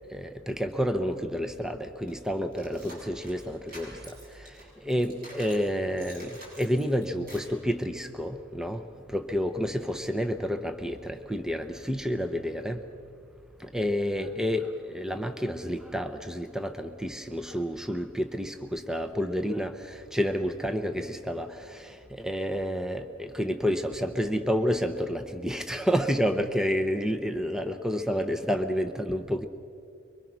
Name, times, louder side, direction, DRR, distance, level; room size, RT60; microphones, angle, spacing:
voice 1, 0.1-8.8 9.1-12.8 13.6-29.5, equal, 5° right, 7 dB, 0.7 m, -30 dB
sound 1, 2.1-5.7 6.0-7.6, equal, 45° right, 7.0 m, -48 dB
24.5 x 23.5 x 6.2 m, 2.5 s
head